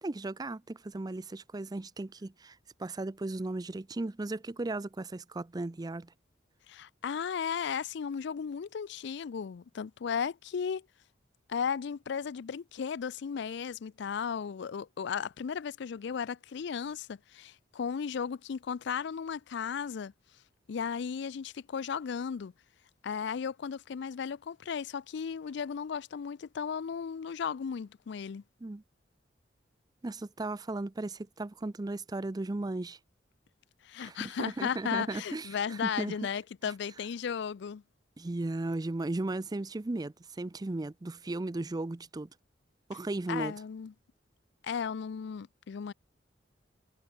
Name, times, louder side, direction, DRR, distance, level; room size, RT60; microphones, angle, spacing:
voice 1, 0.0-6.1 28.6-28.8 30.0-33.0 34.0-36.2 38.2-42.3 42.9-43.5, right 2 dB, 20° right, 0.5 m, -36 dB
voice 2, 6.7-10.8 11.5-20.1 20.7-22.5 23.0-28.4 33.8-37.8 43.3-43.9 44.6-45.9, left 7 dB, 65° left, 0.4 m, -35 dB
head